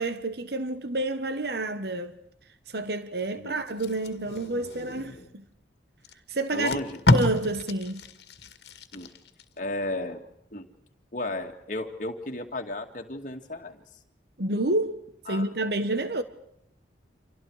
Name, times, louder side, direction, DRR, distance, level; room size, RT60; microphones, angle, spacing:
voice 1, 0.0-2.2 2.7-5.4 6.3-6.8 7.1-8.0 14.4-15.0 15.3-16.2, right 2 dB, 60° right, 1.3 m, -29 dB
Packing tape duct tape, 3.7-5.3 6.0-6.1 6.5-9.4 9.9-10.1, left 2 dB, 65° left, 2.1 m, -29 dB
voice 2, 6.5-7.0 8.9-9.1 9.6-10.7 11.1-13.8 15.3-15.5, left 2 dB, 45° left, 2.3 m, -34 dB
30.0 x 27.0 x 4.9 m
head